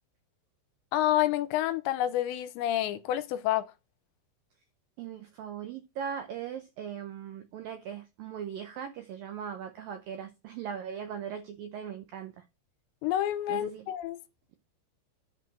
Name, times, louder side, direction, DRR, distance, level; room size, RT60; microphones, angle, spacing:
voice 1, 0.9-3.7 13.0-14.2, left 13 dB, 80° left, 2.9 m, -28 dB
voice 2, 5.0-12.4 13.5-13.9, right 8 dB, 85° right, 2.0 m, -39 dB
11.0 x 4.8 x 7.5 m
omnidirectional pair, 5.3 m